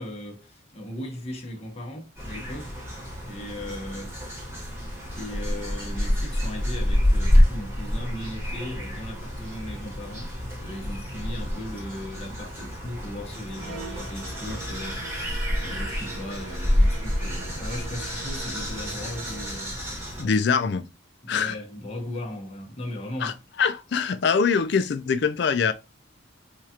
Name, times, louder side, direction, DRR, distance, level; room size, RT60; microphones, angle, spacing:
voice 1, 0.0-2.8 3.3-4.5 5.1-19.8 20.2-20.4 20.8-20.9 21.2-23.4, left 1 dB, 30° left, 0.9 m, -37 dB
sound 1, 2.2-20.2, left 1 dB, 15° right, 1.2 m, -27 dB
sound 2, 13.5-19.7, right 4 dB, 85° right, 0.6 m, -43 dB
voice 2, 20.2-20.8 21.3-21.5 23.2-23.3 23.6-25.7, left 5 dB, 55° left, 0.4 m, -23 dB
4.6 x 2.4 x 2.8 m
head